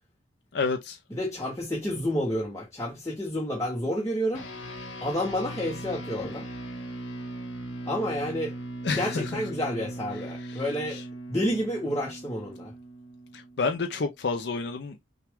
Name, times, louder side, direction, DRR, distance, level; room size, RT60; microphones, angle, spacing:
voice 1, 0.5-1.0 8.8-9.4 10.1-11.0 13.3-15.0, left 4 dB, 60° left, 0.5 m, -30 dB
voice 2, 1.1-4.5 5.0-6.5 7.9-8.5 8.9-11.0 11.3-12.7, equal, 15° left, 0.8 m, -30 dB
sound 1, 4.3-14.0, right 1 dB, 80° left, 1.3 m, -39 dB
5.8 x 2.3 x 3.5 m
head